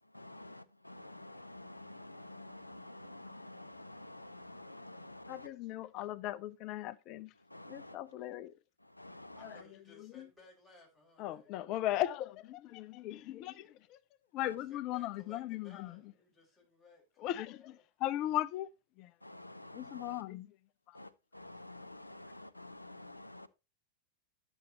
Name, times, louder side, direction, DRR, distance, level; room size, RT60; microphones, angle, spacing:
voice 1, 0.0-5.5 7.3-8.1 8.8-9.6 14.4-14.6 19.2-20.2 20.9-23.5, left 1 dB, 85° left, 0.5 m, -50 dB
voice 2, 5.3-7.3 7.7-8.5 9.4-9.6 10.0-10.3 11.2-13.5 14.3-16.0 17.2-18.7 19.0-19.1 19.7-20.5 20.9-21.0, left 14 dB, 40° left, 0.5 m, -38 dB
voice 3, 9.3-11.5 14.5-17.7, left 2 dB, ahead, 5.7 m, -61 dB
10.5 x 7.1 x 2.9 m
figure-of-eight pair, 90°, 0 cm